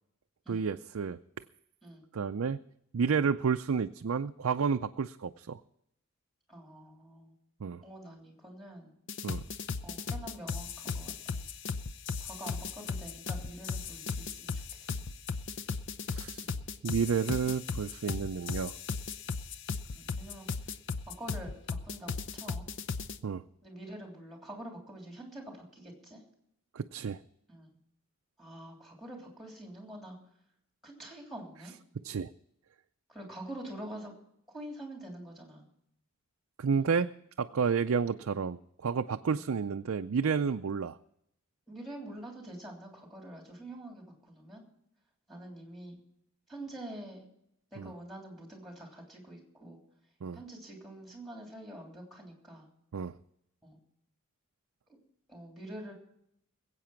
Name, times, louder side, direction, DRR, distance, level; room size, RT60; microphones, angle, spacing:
voice 1, 0.5-1.2 2.1-2.6 2.9-5.6 7.6-7.8 9.2-9.4 16.1-16.5 16.8-18.7 23.2-23.4 26.7-27.2 32.0-32.3 36.6-37.1 37.4-41.0 47.8-47.9 50.2-50.4 52.9-53.1, right 6 dB, 70° right, 7 dB, 0.5 m, -30 dB
voice 2, 6.5-7.3 7.8-8.9 9.8-11.4 12.2-15.0 16.4-16.6 19.9-20.7 21.1-22.6 23.6-26.2 27.5-27.7 28.4-30.2 30.8-31.8 33.1-34.1 34.5-35.6 36.7-36.9 39.3-39.5 41.7-44.6 45.3-46.0 46.5-47.2 47.7-49.8 50.3-52.7 53.6-53.8 55.3-55.9, right 1 dB, ahead, 1 dB, 3.2 m, -46 dB
sound 1, 9.1-23.2, left 4 dB, 55° left, 0.6 m, -36 dB
21.0 x 8.4 x 5.9 m, 0.75 s
head